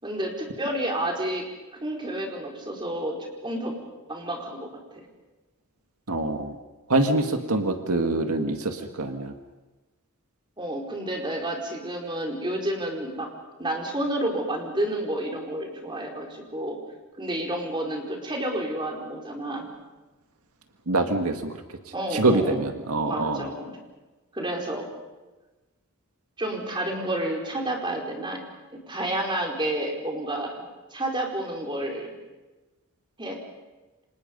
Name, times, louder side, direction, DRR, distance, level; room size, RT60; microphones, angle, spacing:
voice 1, 0.0-1.5 1.8-3.8 4.1-4.7 10.6-13.3 13.6-16.8 17.2-19.7 21.9-22.6 23.0-23.8 24.3-24.9 26.4-28.4 28.7-30.6 30.9-32.1 33.2-33.4, right 1 dB, 20° right, 0 dB, 4.7 m, -30 dB
voice 2, 6.1-6.5 6.9-9.3 20.9-21.5 22.1-23.5, right 2 dB, 85° right, 5 dB, 2.0 m, -25 dB
29.0 x 25.5 x 5.4 m, 1.2 s
head